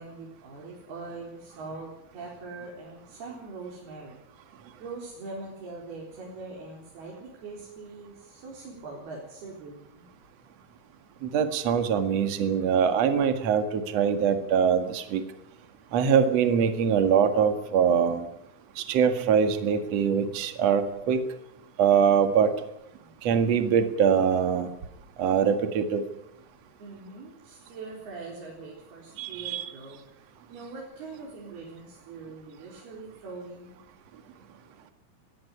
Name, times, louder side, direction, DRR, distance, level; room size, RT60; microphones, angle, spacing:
voice 1, 0.0-4.2 4.8-10.1 26.8-30.2 30.5-33.8, right 3 dB, 90° right, -2 dB, 6.3 m, -42 dB
voice 2, 11.2-15.2 15.9-18.3 18.8-21.2 21.8-22.5 23.2-24.7 25.2-26.0 29.2-29.6, right 7 dB, 50° right, 8 dB, 2.6 m, -23 dB
20.5 x 17.0 x 9.8 m, 0.82 s
omnidirectional pair, 4.3 m